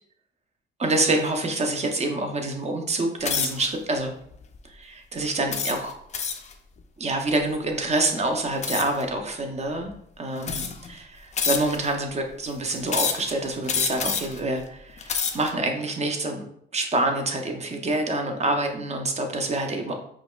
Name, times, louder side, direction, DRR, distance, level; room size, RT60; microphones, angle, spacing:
voice 1, 0.8-4.1 4.7-6.0 7.0-16.4 16.7-19.9, right 2 dB, 35° right, 4 dB, 0.7 m, -27 dB
sound 1, 3.2-3.7 4.3-4.6 5.5-6.5 8.6-9.0 9.9-10.0 10.4-10.9 11.4-11.9 12.9-13.3 13.7-14.4 14.9-15.5, left 6 dB, 35° left, 0.4 m, -27 dB
4.9 x 2.3 x 2.3 m, 0.69 s
cardioid pair, 90°, 20 cm